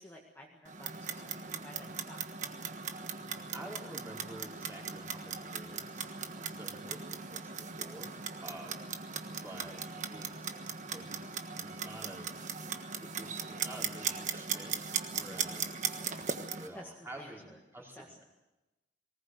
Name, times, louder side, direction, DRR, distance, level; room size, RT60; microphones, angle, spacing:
voice 1, 0.0-2.7 8.5-8.7 15.3-15.7 16.7-17.6 17.9-18.2, equal, 10° left, -2 dB, 1.9 m, -53 dB
Clock, 0.7-16.7, right 6 dB, 40° right, 1.4 m, -39 dB
voice 2, 3.5-6.2 6.4-8.9 9.4-10.5 10.9-12.3 13.0-15.9 16.5-18.2, right 1 dB, 15° right, -3 dB, 4.6 m, -49 dB
20.0 x 18.5 x 8.0 m, 1.0 s
head